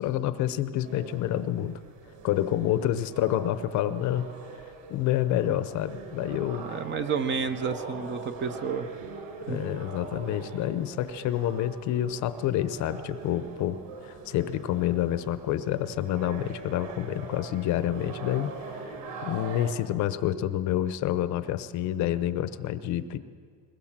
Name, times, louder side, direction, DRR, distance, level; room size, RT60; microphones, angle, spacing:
voice 1, 0.0-1.8 2.2-4.2 4.9-6.7 9.5-18.5 18.8-18.9 19.2-23.2, left 12 dB, 35° left, 13 dB, 0.8 m, -28 dB
sound 1, 0.8-19.8, right 4 dB, 45° right, 4.1 m, -42 dB
voice 2, 6.6-8.9 9.5-9.6, right 6 dB, 25° right, 10 dB, 0.6 m, -30 dB
21.5 x 21.0 x 7.4 m, 2.1 s
cardioid pair, 165°, 48 cm